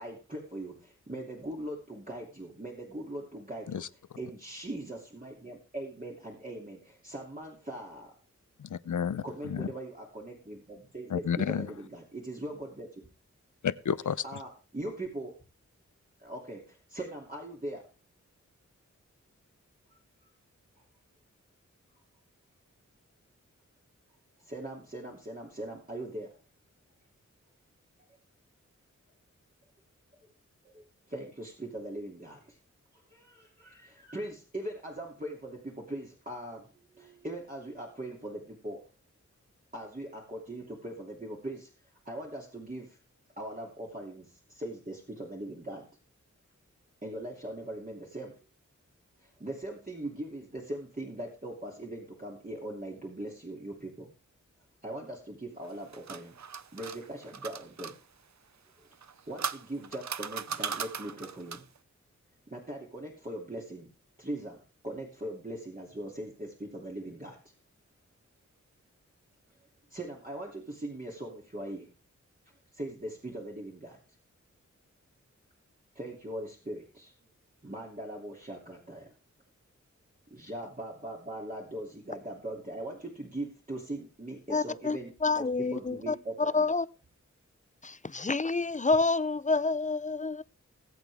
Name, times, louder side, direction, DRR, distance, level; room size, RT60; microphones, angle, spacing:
voice 1, 0.0-3.9 4.2-8.1 9.2-13.0 14.2-15.3 16.2-17.9 24.4-26.3 30.6-32.6 33.1-38.8 39.7-41.7 42.0-43.0 43.4-45.9 47.0-48.4 49.2-54.1 54.8-56.3 56.7-57.9 59.3-61.7 62.5-63.9 64.2-64.6 64.8-67.4 69.9-71.9 72.7-74.0 75.9-77.1 77.6-79.1 80.3-86.7, right 1 dB, 30° right, 2.8 m, -40 dB
voice 2, 8.6-9.7 11.1-11.7 13.6-14.2, left 7 dB, 90° left, 0.7 m, -31 dB
sound 1, 55.6-58.0 58.9-61.8, right 7 dB, 70° right, 0.7 m, -38 dB
voice 3, 84.5-86.9 87.8-90.4, left 3 dB, 25° left, 0.5 m, -28 dB
19.5 x 8.2 x 3.5 m
wide cardioid pair, 65°, 30 cm